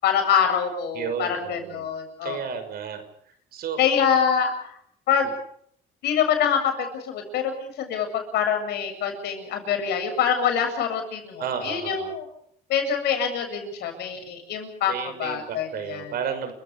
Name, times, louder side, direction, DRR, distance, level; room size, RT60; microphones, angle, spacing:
voice 1, 0.0-2.4 3.8-4.5 5.1-5.3 6.0-12.3 12.7-14.9 15.2-16.1, left 7 dB, 75° left, 5 dB, 7.7 m, -25 dB
voice 2, 0.9-1.9 2.2-3.0 3.5-3.8 11.4-12.1 14.9-16.5, right 7 dB, 65° right, 9 dB, 5.9 m, -32 dB
29.5 x 16.5 x 8.4 m, 0.68 s
cardioid pair, 110°, 17 cm